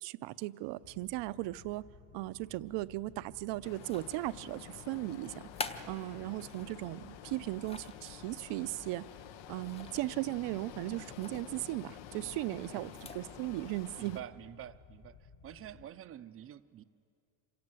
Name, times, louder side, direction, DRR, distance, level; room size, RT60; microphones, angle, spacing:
voice 1, 0.0-1.9 2.1-5.5 5.8-9.1 9.5-14.2, right 18 dB, 70° right, 0.6 m, -37 dB
sound 1, 0.8-15.9, left 6 dB, 35° left, 0.9 m, -57 dB
sound 2, 3.6-14.2, left 10 dB, 85° left, 1.1 m, -50 dB
sound 3, 3.7-4.4 5.2-6.8 7.3-8.0 9.6-10.1 10.4-10.5 11.1-11.5 12.8-13.3, left 3 dB, 15° left, 0.6 m, -45 dB
voice 2, 12.7-13.0 14.0-16.8, right 11 dB, 30° right, 0.5 m, -48 dB
26.5 x 17.5 x 7.8 m
cardioid pair, 155°, 45 cm